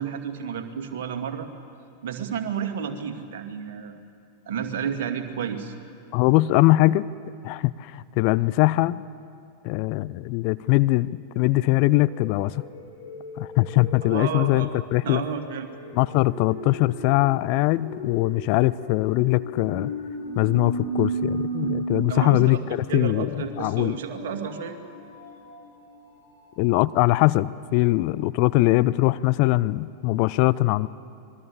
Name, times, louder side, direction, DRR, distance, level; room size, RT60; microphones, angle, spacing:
voice 1, 0.0-1.5 2.0-4.1 4.5-5.7 14.0-14.7 15.0-15.7 22.1-22.6 22.9-24.8, right 7 dB, 55° right, 5 dB, 2.4 m, -31 dB
voice 2, 6.1-7.1 7.4-9.0 9.6-11.1 11.4-12.6 13.4-15.2 15.9-19.9 20.4-24.0 26.6-30.9, left 19 dB, 45° left, 15 dB, 0.5 m, -21 dB
sound 1, 10.2-10.4 11.5-27.5 27.9-28.0 28.2-28.3, right 2 dB, 60° left, 7.3 m, -36 dB
26.0 x 21.5 x 8.3 m, 2.4 s
figure-of-eight pair, 90°, 0 cm